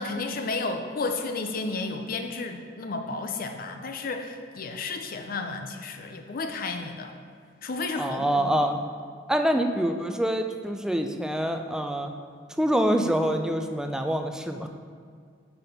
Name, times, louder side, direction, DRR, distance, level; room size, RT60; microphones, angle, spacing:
voice 1, 0.0-7.2 7.6-8.6, left 3 dB, 50° left, 5 dB, 0.5 m, -32 dB
voice 2, 8.0-8.8 9.3-12.1 12.6-14.7, equal, 5° right, 5 dB, 0.4 m, -25 dB
5.9 x 5.8 x 5.2 m, 2.1 s
head